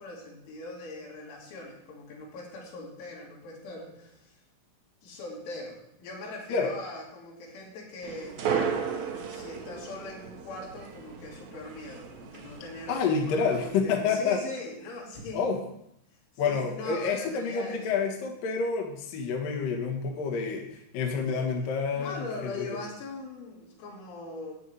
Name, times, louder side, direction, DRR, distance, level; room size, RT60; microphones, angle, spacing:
voice 1, 0.0-4.3 5.0-8.4 9.3-15.5 16.4-18.0 21.3-21.5 22.0-24.5, left 2 dB, 80° left, -5 dB, 5.6 m, -41 dB
sound 1, 8.0-13.8, right 6 dB, 65° right, 2.7 m, -35 dB
voice 2, 12.9-14.4 15.3-15.6 16.4-22.7, left 5 dB, 60° left, 2 dB, 2.7 m, -28 dB
14.0 x 5.0 x 9.0 m, 0.75 s
omnidirectional pair, 5.4 m